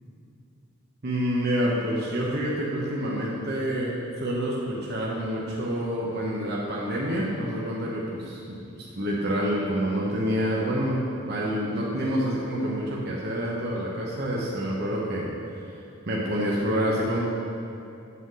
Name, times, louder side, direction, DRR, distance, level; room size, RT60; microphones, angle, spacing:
voice 1, 1.0-3.9 4.2-15.3 15.7-17.2, equal, 50° right, -4 dB, 0.9 m, -27 dB
7.9 x 3.9 x 6.1 m, 2.7 s
head